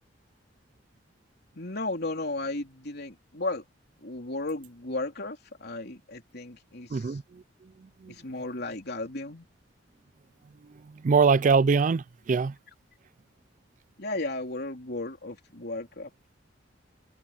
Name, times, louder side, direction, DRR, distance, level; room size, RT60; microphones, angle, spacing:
voice 1, 1.6-3.6 4.0-7.2 8.1-9.5 14.0-16.1, left 2 dB, 55° left, 3.5 m, -34 dB
voice 2, 6.9-7.4 8.0-8.1 10.9-12.5, right 5 dB, 40° right, 0.4 m, -23 dB
head